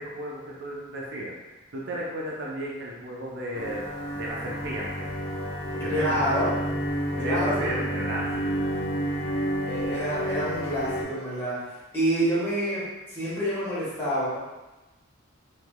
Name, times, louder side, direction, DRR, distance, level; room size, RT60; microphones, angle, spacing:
voice 1, 0.0-1.3 1.7-5.1 5.8-6.3 7.1-8.6, right 1 dB, 60° right, -3 dB, 0.5 m, -34 dB
sound 1, 3.5-11.0, equal, 60° left, 0.7 m, -30 dB
voice 2, 5.7-6.5 7.2-8.0 9.6-11.6 11.9-14.4, right 1 dB, 10° left, -11 dB, 1.4 m, -28 dB
3.3 x 3.0 x 2.2 m, 1.1 s
head